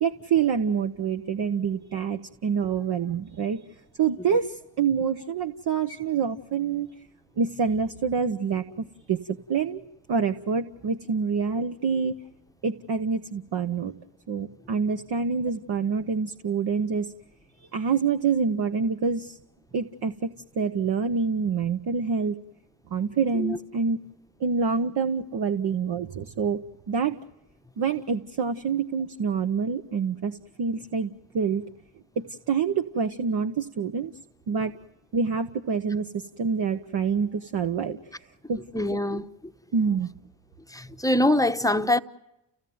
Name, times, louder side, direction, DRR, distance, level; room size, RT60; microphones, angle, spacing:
voice 1, 0.0-3.6 4.0-6.9 7.4-8.6 9.1-9.2 9.5-9.8 10.1-12.1 12.6-13.9 14.3-17.1 17.7-19.4 19.7-22.4 22.9-24.0 24.4-26.6 26.9-27.1 27.8-31.6 32.2-34.1 34.5-34.7 35.1-38.0 38.5-38.6 39.7-40.1, right 6 dB, 50° right, 1.2 m, -26 dB
voice 2, 38.7-39.3 40.7-42.0, left 1 dB, 5° left, 1.0 m, -23 dB
30.0 x 16.5 x 9.5 m
supercardioid pair, 60°, 50 cm